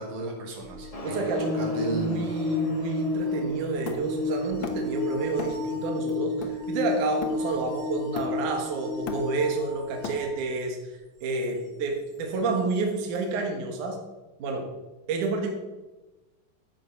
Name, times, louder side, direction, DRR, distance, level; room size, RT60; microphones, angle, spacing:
voice 1, 0.0-2.3, right 1 dB, 90° right, 0 dB, 4.4 m, -34 dB
sound 1, 0.6-10.4 12.7-12.8, left 3 dB, 35° right, 3.8 m, -32 dB
Motorcycle, 0.9-5.9, left 1 dB, 35° left, 0.5 m, -42 dB
voice 2, 1.0-14.0 14.4-14.7 15.1-15.5, right 3 dB, 65° right, 3 dB, 2.8 m, -29 dB
Hammer, 3.9-5.0 5.4-5.7 6.1-7.7 8.2-8.6 8.9-10.6, left 4 dB, 60° left, 1.2 m, -38 dB
13.0 x 8.4 x 5.8 m, 1.1 s
omnidirectional pair, 4.0 m